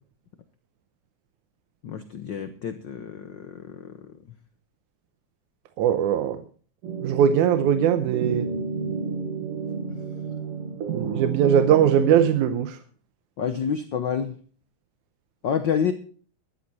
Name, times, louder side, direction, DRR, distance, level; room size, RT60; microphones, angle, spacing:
voice 1, 1.8-4.0 13.4-14.3 15.4-15.9, left 7 dB, 85° left, 9 dB, 1.0 m, -28 dB
voice 2, 5.8-6.4 7.0-8.5 10.9-12.8, right 9 dB, 85° right, 10 dB, 2.2 m, -20 dB
sound 1, 6.8-12.4, right 5 dB, 55° right, 2.1 m, -31 dB
13.5 x 13.0 x 4.1 m, 0.43 s
omnidirectional pair, 3.5 m